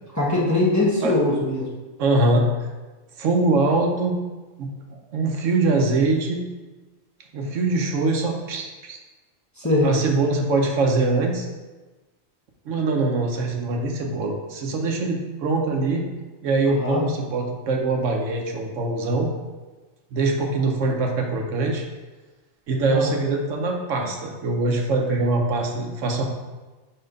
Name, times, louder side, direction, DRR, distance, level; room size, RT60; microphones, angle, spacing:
voice 1, 0.1-1.7 9.6-9.9 16.6-17.0 22.9-23.1, left 2 dB, 15° left, -5 dB, 1.0 m, -21 dB
voice 2, 2.0-2.4 3.2-4.2 4.6-6.4 7.3-9.0 9.8-11.5 12.7-16.0 16.4-19.3 20.1-21.8 22.7-26.2, right 3 dB, 80° right, 1 dB, 1.2 m, -23 dB
4.4 x 4.3 x 5.2 m, 1.2 s
omnidirectional pair, 1.3 m